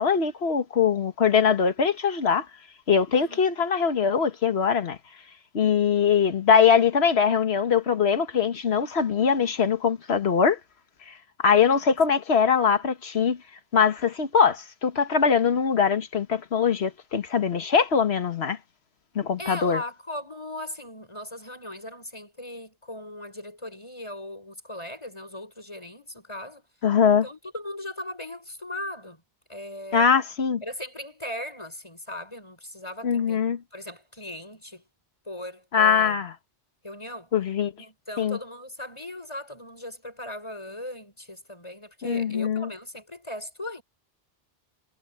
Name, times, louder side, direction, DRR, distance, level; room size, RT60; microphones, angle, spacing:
voice 1, 0.0-2.5 2.9-5.0 5.5-10.6 11.1-11.2 11.4-13.4 13.7-18.6 19.1-19.8 26.8-27.2 29.9-30.6 33.0-33.6 35.7-36.3 37.3-37.7 38.2-38.4 42.0-42.7, left 6 dB, 80° left, 1.6 m, -22 dB
voice 2, 3.1-3.5 11.7-11.8 19.4-26.7 27.2-29.2 29.5-30.1 30.6-33.4 33.7-34.8 35.2-36.2 36.8-37.3 37.8-43.8, left 1 dB, 30° left, 6.5 m, -38 dB
omnidirectional pair, 1.1 m